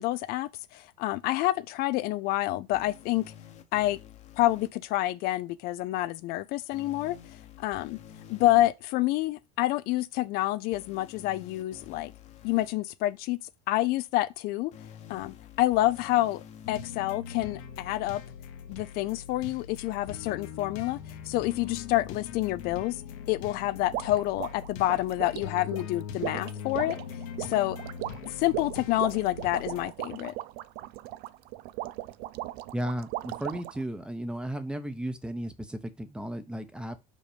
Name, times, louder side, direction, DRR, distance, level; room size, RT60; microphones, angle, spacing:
voice 1, 0.0-3.2 3.7-4.0 4.4-7.2 7.6-8.0 8.3-12.1 12.4-13.4 13.7-14.7 15.1-16.4 16.7-18.2 18.7-21.0 21.3-23.0 23.3-27.0 27.5-27.8 28.4-30.3, left 16 dB, 60° left, 0.5 m, -28 dB
sound 1, 2.7-4.7 6.7-8.7 10.7-12.7 14.7-16.7 18.7-18.8, left 9 dB, 40° left, 1.0 m, -49 dB
sound 2, 16.6-29.8, left 8 dB, 85° left, 1.4 m, -41 dB
sound 3, 23.9-33.8, right 16 dB, 65° right, 0.4 m, -38 dB
voice 2, 32.7-37.0, right 1 dB, 5° right, 0.9 m, -34 dB
5.3 x 5.1 x 5.1 m
cardioid pair, 135°, 17 cm